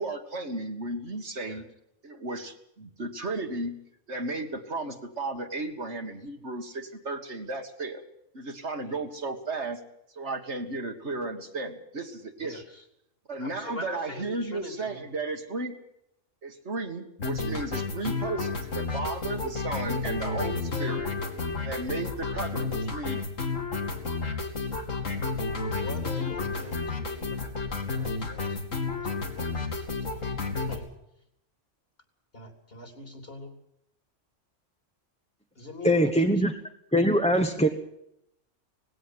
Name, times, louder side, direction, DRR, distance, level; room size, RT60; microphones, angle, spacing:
voice 1, 0.0-1.7 2.0-3.8 4.1-8.0 8.3-9.8 10.1-12.7 13.3-15.8 16.4-21.1 21.6-23.2, right 2 dB, 60° right, 5 dB, 2.2 m, -34 dB
voice 2, 12.4-12.8 13.4-15.0 21.7-21.9 24.6-24.7 25.7-28.6 29.0-30.3 30.6-30.9 32.3-33.5 35.6-36.3, left 2 dB, 50° left, 5 dB, 4.1 m, -43 dB
sound 1, 17.2-30.8, left 4 dB, 90° left, 3.1 m, -31 dB
voice 3, 35.8-36.5 36.9-37.7, equal, 5° left, 3 dB, 1.1 m, -22 dB
19.5 x 17.0 x 8.1 m, 0.77 s
omnidirectional pair, 1.3 m